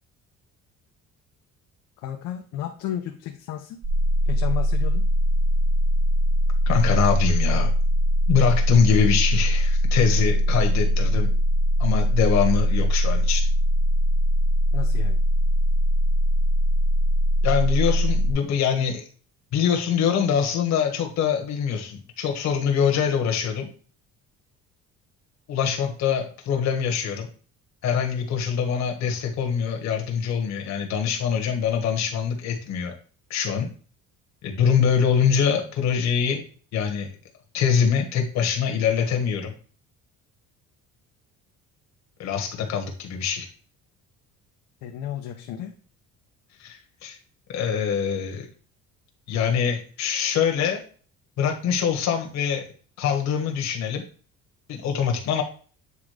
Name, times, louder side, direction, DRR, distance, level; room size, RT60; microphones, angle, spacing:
voice 1, 2.0-3.8 4.2-5.0 14.7-15.2 44.8-45.7, left 11 dB, 80° left, 3 dB, 0.9 m, -33 dB
sound 1, 3.8-18.3, equal, 35° right, 1.3 m, -21 dB
voice 2, 6.6-7.7 8.3-11.3 11.8-13.5 17.4-19.0 19.5-23.7 25.5-27.3 27.8-32.9 33.3-33.7 34.4-36.4 36.7-37.1 37.5-39.5 42.2-43.5 46.6-47.2 47.5-48.5 49.3-50.8 51.4-52.6 53.0-54.0 54.7-55.4, left 7 dB, 60° left, 3 dB, 1.6 m, -24 dB
8.4 x 3.6 x 5.1 m, 0.41 s
cardioid pair, 145°, 30 cm